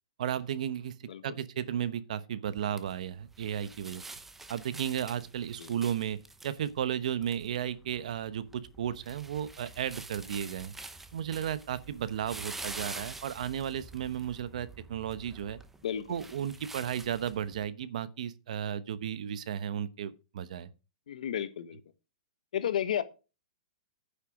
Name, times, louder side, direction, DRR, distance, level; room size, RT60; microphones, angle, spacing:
voice 1, 0.2-0.9 1.2-4.0 4.5-10.7 11.1-15.6 16.1-20.7, right 9 dB, 65° right, 1.0 m, -34 dB
sound 1, 2.5-17.7, right 3 dB, 5° right, 0.8 m, -47 dB
voice 2, 21.1-21.8 22.5-23.0, left 9 dB, 70° left, 1.3 m, -32 dB
9.9 x 6.8 x 4.8 m
hypercardioid pair, 150°, 4 cm